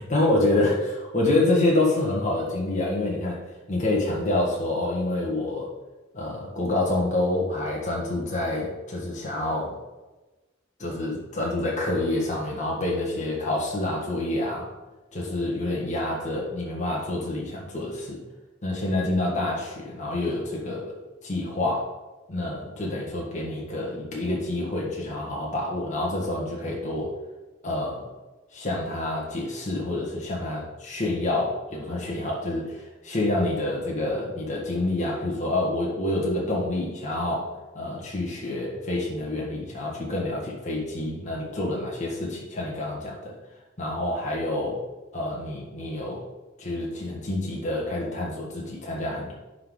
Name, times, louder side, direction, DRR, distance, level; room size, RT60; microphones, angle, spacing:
voice 1, 0.1-3.4 3.7-5.7 6.1-9.7 10.8-14.7 15.1-18.2 18.6-20.9 21.2-21.9 22.3-27.1 27.6-28.1 28.5-32.8 33.0-37.5 37.7-43.3 43.8-44.8 45.1-46.2 46.6-49.3, left 2 dB, 40° left, -3 dB, 1.6 m, -27 dB
11.0 x 3.9 x 3.9 m, 1.1 s
head